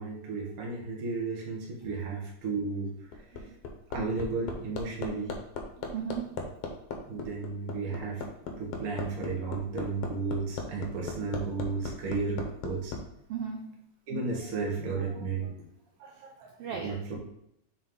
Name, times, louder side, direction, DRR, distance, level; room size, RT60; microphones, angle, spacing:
voice 1, 0.0-2.9 3.9-5.4 7.1-8.2 8.6-12.9 14.1-15.5 16.8-17.1, right 4 dB, 50° right, -2 dB, 1.1 m, -33 dB
Hammer, 2.9-13.0 14.4-14.5, left 4 dB, 70° left, 1.7 m, -37 dB
voice 2, 5.8-6.4 13.3-13.7 14.4-14.7 15.0-15.3 16.0-17.0, right 7 dB, 85° right, 1 dB, 1.3 m, -38 dB
7.0 x 3.6 x 3.7 m, 0.76 s
omnidirectional pair, 3.4 m